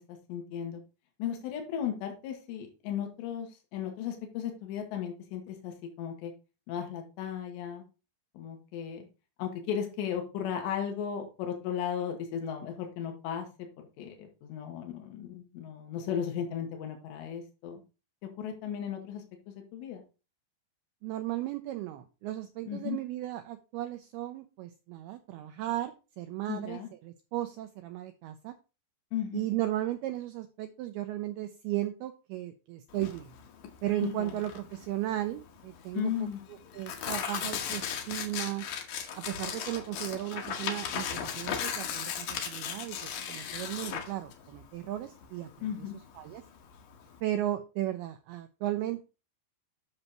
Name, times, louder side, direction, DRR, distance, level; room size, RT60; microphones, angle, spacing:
voice 1, 0.3-0.8 1.2-6.3 6.7-7.8 8.4-9.1 9.4-13.5 14.0-17.8 18.4-20.0 22.7-23.0 26.5-26.9 29.1-29.5 34.0-34.4 35.9-36.4 45.6-45.9, left 8 dB, 80° left, 3 dB, 3.6 m, -35 dB
voice 2, 21.0-28.5 29.3-33.3 33.8-36.3 36.7-38.7 39.2-45.9 46.2-46.4 47.2-49.0, right 14 dB, 85° right, 8 dB, 2.2 m, -35 dB
Tearing, 32.9-47.2, left 8 dB, 65° left, 2.3 m, -37 dB
10.5 x 6.4 x 3.0 m, 0.31 s
omnidirectional pair, 5.0 m